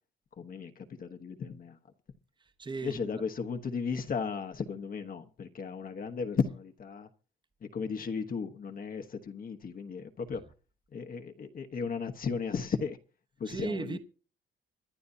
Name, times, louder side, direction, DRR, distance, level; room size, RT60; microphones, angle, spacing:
voice 1, 0.4-1.8 2.8-7.1 7.6-10.4 10.9-13.0 13.4-14.0, left 5 dB, 45° left, 1.2 m, -35 dB
voice 2, 2.4-3.2 10.3-10.4 13.4-14.0, right 4 dB, 25° right, 1.1 m, -37 dB
24.5 x 10.5 x 2.7 m
cardioid pair, 90°, 20 cm